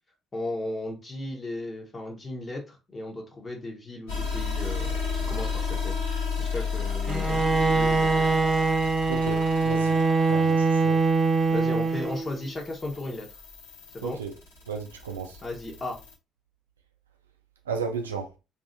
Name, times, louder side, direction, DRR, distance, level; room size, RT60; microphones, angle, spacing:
voice 1, 0.3-5.9 6.4-7.4 7.8-8.3 11.5-13.3 13.9-14.2 15.4-16.0, left 2 dB, 30° left, 1.1 m, -35 dB
sound 1, 4.1-16.1, left 5 dB, 75° left, 1.2 m, -33 dB
Bowed string instrument, 7.1-12.4, right 3 dB, 25° right, 0.4 m, -23 dB
voice 2, 9.1-10.0 10.3-11.0 14.0-14.3 14.7-15.4 17.7-18.3, right 5 dB, 80° right, 0.5 m, -34 dB
3.3 x 2.7 x 2.6 m
figure-of-eight pair, 50°, 0 cm